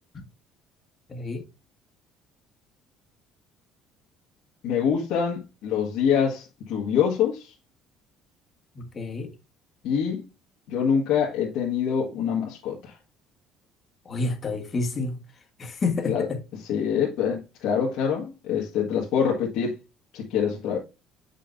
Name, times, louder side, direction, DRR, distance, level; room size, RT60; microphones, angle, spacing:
voice 1, 1.1-1.4 8.7-9.3 14.0-15.2 15.6-16.4 16.7-16.8, left 3 dB, 30° left, 1.4 m, -29 dB
voice 2, 4.6-7.5 9.8-10.3 10.7-12.9 16.1-16.2 16.7-19.7 20.1-20.8, left 7 dB, 75° left, 1.5 m, -25 dB
7.5 x 5.4 x 2.6 m
cardioid pair, 125°, 0 cm